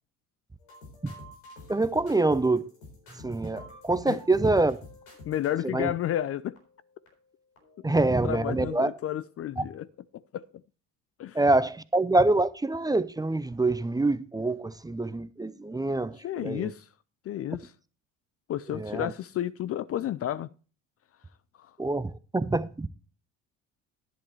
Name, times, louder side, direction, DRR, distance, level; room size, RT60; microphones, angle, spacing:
sound 1, 0.6-8.3 8.6-8.9, left 2 dB, 90° left, 4.2 m, -51 dB
voice 1, 1.7-2.7 3.1-4.8 5.6-5.9 7.8-8.9 9.6-9.7 11.3-16.7 18.7-19.1 21.8-22.9, right 2 dB, 10° right, 0.6 m, -26 dB
voice 2, 5.3-6.6 8.2-9.9 10.1-10.4 11.2-11.4 16.2-16.9 17.2-17.7 18.5-20.5 21.6-21.8, left 12 dB, 40° left, 0.5 m, -32 dB
11.0 x 10.5 x 3.2 m
hypercardioid pair, 65°, 37 cm